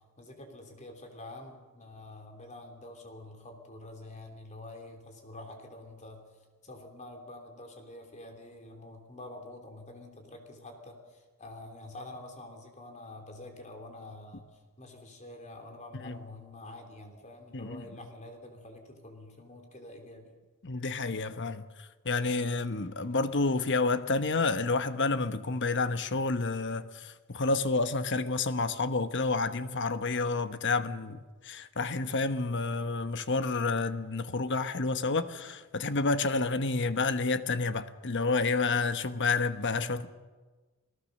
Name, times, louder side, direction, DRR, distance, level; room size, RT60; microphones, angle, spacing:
voice 1, 0.2-6.2 6.6-14.5 14.8-20.4, left 2 dB, 30° left, 3.1 m, -47 dB
voice 2, 20.6-21.6 22.0-31.2 31.4-40.1, left 3 dB, 55° left, 1.1 m, -29 dB
29.0 x 18.5 x 6.6 m
head